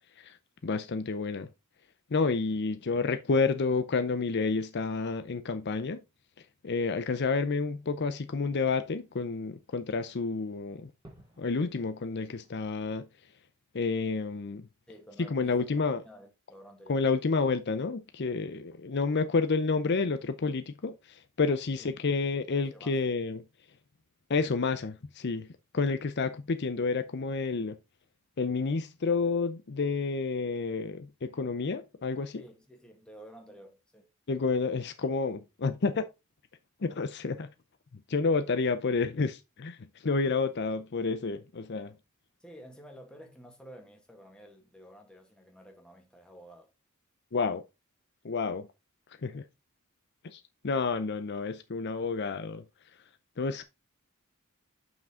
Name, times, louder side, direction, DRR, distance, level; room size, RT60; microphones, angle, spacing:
voice 1, 0.6-1.5 2.1-6.0 6.4-10.9 11.4-13.3 13.7-14.7 15.3-16.0 16.9-23.5 24.3-27.8 28.4-32.4 34.3-36.0 36.8-37.5 37.9-42.0 47.3-47.6 48.2-48.7 49.2-49.4 50.2-52.6 52.9-53.0 53.4-53.6, left 4 dB, 50° left, 0.6 m, -30 dB
Fireworks, 7.4-12.7, right 1 dB, 20° right, 2.2 m, -62 dB
voice 2, 14.9-17.2 21.7-22.1 22.5-23.0 32.3-34.1 42.4-46.7 47.4-47.6, equal, 5° left, 1.8 m, -52 dB
7.2 x 6.0 x 3.7 m
head